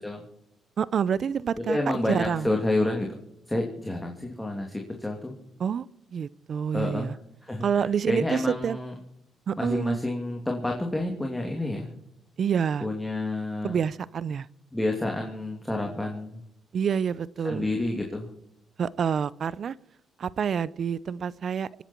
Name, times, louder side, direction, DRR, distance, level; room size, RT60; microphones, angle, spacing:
voice 1, 0.8-1.8 2.1-2.5 5.6-5.9 6.1-7.2 7.6-8.8 9.5-10.0 12.4-12.9 13.6-14.5 16.7-17.7 18.8-19.8 20.2-21.8, right 7 dB, 55° right, 21 dB, 0.6 m, -27 dB
voice 2, 1.7-3.1 3.5-5.3 6.7-7.1 7.4-7.6 8.1-8.9 9.6-11.9 12.8-13.8 14.7-16.4 17.4-18.3, left 2 dB, 10° left, 1 dB, 2.8 m, -29 dB
26.0 x 10.0 x 4.5 m, 0.76 s
cardioid pair, 90°, 0 cm